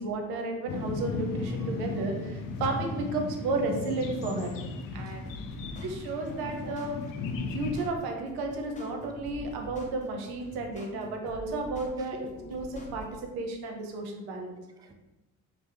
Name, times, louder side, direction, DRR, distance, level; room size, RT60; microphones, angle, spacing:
voice 1, 0.0-4.5 4.9-5.2 5.8-7.0 7.5-13.1 13.4-14.6, right 3 dB, 75° right, 3 dB, 0.7 m, -33 dB
sound 1, 0.7-7.8, left 3 dB, 60° left, 0.5 m, -35 dB
voice 2, 1.6-2.0 5.0-5.8 10.8-11.0 12.0-12.5 14.8-14.9, equal, 10° right, 4 dB, 0.3 m, -49 dB
sound 2, 5.3-13.2, left 1 dB, 20° left, 0.6 m, -46 dB
3.4 x 2.0 x 3.2 m, 1.0 s
supercardioid pair, 60°, 38 cm